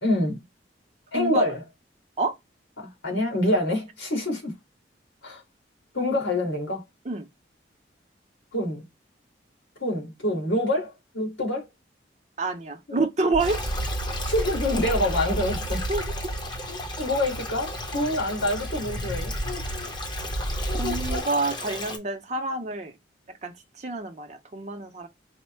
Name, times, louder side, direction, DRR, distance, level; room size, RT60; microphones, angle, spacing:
voice 1, 0.0-0.4 1.1-1.6 2.8-4.5 5.2-5.4 5.9-6.8 8.5-8.9 9.8-11.6 12.9-13.1 14.2-15.9 16.7-19.9 20.6-21.3, left 1 dB, 80° left, 2.2 m, -27 dB
voice 2, 1.1-1.5 2.2-2.4 7.0-7.3 12.4-13.6 15.9-16.0 20.7-22.9 23.4-25.1, right 3 dB, 40° right, 0.6 m, -28 dB
sound 1, 13.3-21.2, right 1 dB, 50° left, 0.8 m, -32 dB
Stream, 13.4-22.0, left 2 dB, 25° left, 0.8 m, -36 dB
4.3 x 2.1 x 4.3 m
head